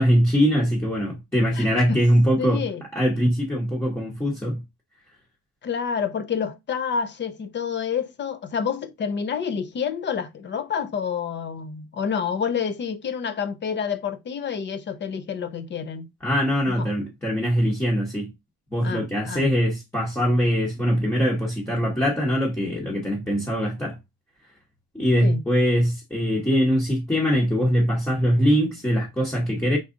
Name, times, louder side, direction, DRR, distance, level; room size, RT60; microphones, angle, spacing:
voice 1, 0.0-2.6 2.9-4.6 16.2-18.3 18.7-24.0 24.9-29.8, equal, 5° left, 0.9 m, -22 dB
voice 2, 1.5-2.0 2.4-2.8 5.6-16.1 16.7-16.9 18.8-19.5 25.2-25.4, left 6 dB, 30° left, 0.4 m, -28 dB
4.7 x 3.8 x 2.5 m
cardioid pair, 165°, 40 cm